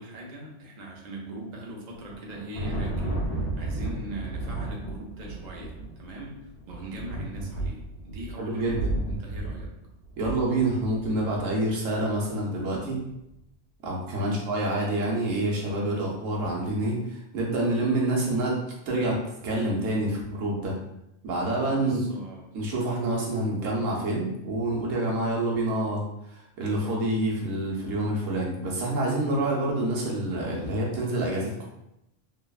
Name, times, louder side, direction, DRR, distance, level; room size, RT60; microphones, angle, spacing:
voice 1, 0.0-3.2 3.6-8.8 9.1-9.7 14.2-14.5 21.8-22.5, right 2 dB, 55° right, -2 dB, 0.5 m, -41 dB
Thunder, 2.0-11.4, right 2 dB, 90° left, 1.1 m, -33 dB
voice 2, 8.4-8.9 10.2-13.0 13.8-18.6 18.9-19.2 19.4-20.7 21.2-22.0 22.5-31.6, right 1 dB, 80° right, -3 dB, 1.1 m, -27 dB
3.1 x 2.0 x 2.3 m, 0.84 s
omnidirectional pair, 1.3 m